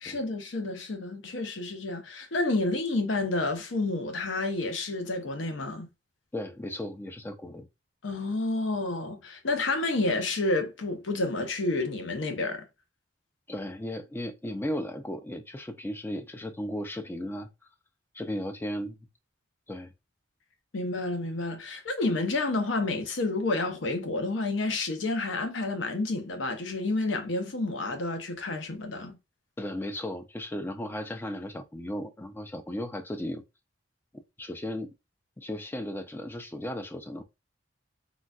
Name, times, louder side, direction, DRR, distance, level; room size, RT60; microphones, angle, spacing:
voice 1, 0.0-5.9 8.0-12.6 20.7-29.2, left 2 dB, 70° left, 0.7 m, -30 dB
voice 2, 6.3-7.7 13.5-17.5 18.1-19.0 19.7-19.9 29.6-33.4 34.4-34.9 35.4-37.2, left 1 dB, 10° left, 0.4 m, -35 dB
3.8 x 2.3 x 2.2 m
head